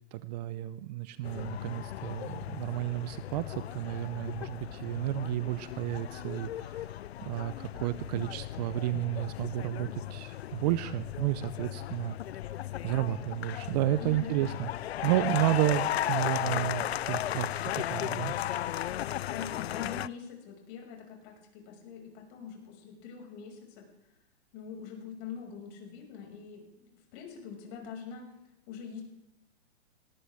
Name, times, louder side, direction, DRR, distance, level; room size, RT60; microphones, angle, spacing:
voice 1, 0.1-6.8 7.2-12.2 12.8-14.7 15.0-17.5 17.9-18.3, right 15 dB, 40° right, 15 dB, 0.7 m, -31 dB
sound 1, 1.2-20.1, left 12 dB, 70° left, 0.6 m, -36 dB
voice 2, 14.0-14.4 19.3-23.9 24.5-28.3 28.7-29.0, left 7 dB, 40° left, 0 dB, 6.2 m, -44 dB
19.0 x 18.5 x 3.6 m, 0.89 s
hypercardioid pair, 125°, 33 cm